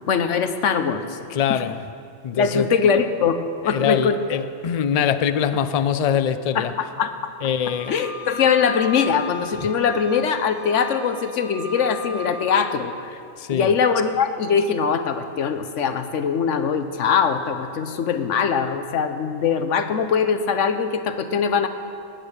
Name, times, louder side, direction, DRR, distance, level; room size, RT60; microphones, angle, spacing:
voice 1, 0.1-1.2 1.5-1.6 2.3-4.2 6.5-7.3 7.9-13.2 13.5-21.7, left 6 dB, 75° left, 9 dB, 1.1 m, -22 dB
voice 2, 1.3-1.8 2.2-2.7 3.7-6.7 7.4-7.9 13.4-13.7, left 8 dB, 55° left, 12 dB, 0.4 m, -23 dB
Wind instrument woodwind instrument, 7.6-12.4, left 3 dB, 80° right, 3.6 m, -36 dB
17.5 x 8.9 x 6.6 m, 2.5 s
omnidirectional pair, 1.3 m